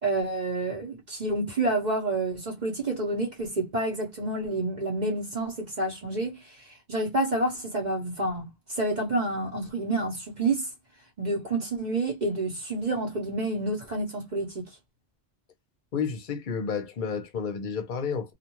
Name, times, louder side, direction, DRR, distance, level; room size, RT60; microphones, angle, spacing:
voice 1, 0.0-10.7 11.2-14.7, right 2 dB, 40° right, 0.9 m, -29 dB
voice 2, 15.9-18.3, left 6 dB, 50° left, 0.8 m, -31 dB
2.5 x 2.3 x 2.9 m
omnidirectional pair, 1.2 m